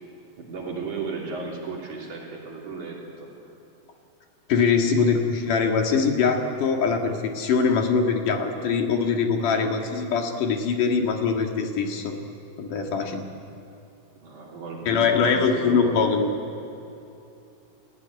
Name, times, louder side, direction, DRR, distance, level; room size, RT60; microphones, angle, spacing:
voice 1, 0.4-3.5 14.2-16.2, right 4 dB, 60° right, -3 dB, 4.6 m, -34 dB
voice 2, 4.5-12.1 12.6-13.2 14.9-16.3, left 5 dB, 65° left, 3 dB, 3.4 m, -23 dB
30.0 x 16.5 x 9.6 m, 2.8 s
omnidirectional pair, 4.0 m